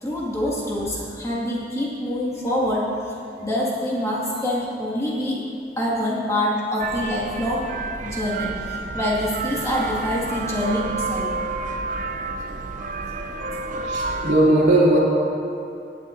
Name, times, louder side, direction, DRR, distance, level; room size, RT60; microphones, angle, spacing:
voice 1, 0.0-2.9 3.4-5.4 5.8-7.7 8.0-11.3 13.1-13.8, left 1 dB, 15° left, -6 dB, 1.8 m, -26 dB
sound 1, 6.8-14.3, right 3 dB, 45° right, 0.5 m, -30 dB
voice 2, 13.8-15.0, right 1 dB, 75° right, -6 dB, 2.6 m, -17 dB
17.5 x 9.3 x 2.6 m, 2.6 s
head